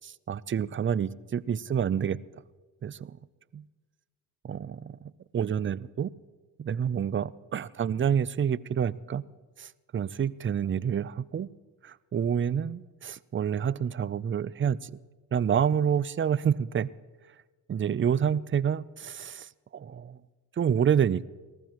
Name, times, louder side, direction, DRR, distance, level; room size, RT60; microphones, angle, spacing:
voice 1, 0.0-2.2 2.8-3.2 3.5-3.6 4.4-6.1 6.6-9.2 9.6-11.5 11.8-14.9 15.3-16.9 17.7-20.2 20.6-21.3, right 8 dB, 30° right, 20 dB, 0.4 m, -28 dB
19.5 x 14.5 x 3.0 m, 1.3 s
supercardioid pair, 50°, 41 cm